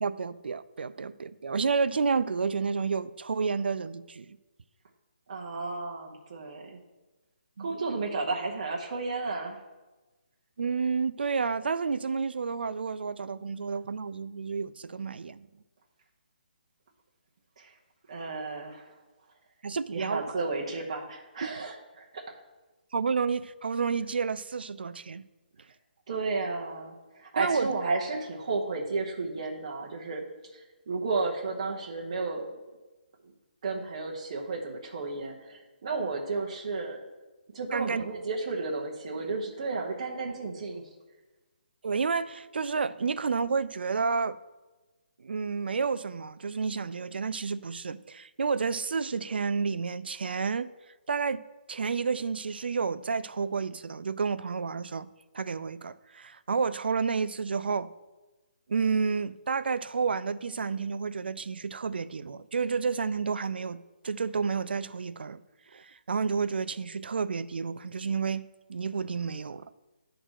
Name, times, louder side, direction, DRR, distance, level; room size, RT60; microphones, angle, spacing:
voice 1, 0.0-4.4 7.6-7.8 10.6-15.5 19.6-20.3 21.4-21.6 22.9-25.2 27.4-27.7 37.7-38.0 41.8-44.4 45.2-50.7 51.1-51.4 51.7-55.1 55.3-57.9 58.7-65.4 65.7-69.7, right 5 dB, 70° right, 0.4 m, -30 dB
voice 2, 5.3-6.8 7.6-9.6 17.6-17.7 18.1-18.8 19.9-22.2 26.1-30.2 30.9-32.5 33.6-37.0 37.5-40.8, right 3 dB, 35° right, 1.0 m, -33 dB
10.0 x 3.9 x 6.3 m
hypercardioid pair, 175°, 6 cm